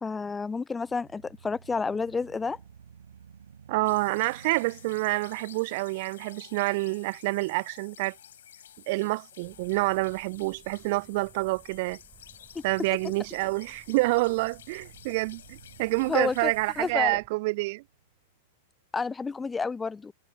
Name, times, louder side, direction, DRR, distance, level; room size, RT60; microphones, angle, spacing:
voice 1, 0.0-2.6 12.6-12.7 16.1-16.5 16.8-17.2 18.9-20.1, left 4 dB, 10° left, 0.4 m, -30 dB
sound 1, 0.7-8.8 9.3-9.4 13.9-18.4, right 7 dB, 65° right, 4.7 m, -55 dB
voice 2, 3.7-8.2 8.9-12.0 12.6-17.8, right 23 dB, 45° right, 0.6 m, -28 dB
sound 2, 3.8-16.9, left 10 dB, 60° left, 5.8 m, -52 dB
sound 3, 9.4-17.3, right 9 dB, 25° right, 7.8 m, -58 dB
figure-of-eight pair, 95°, 0 cm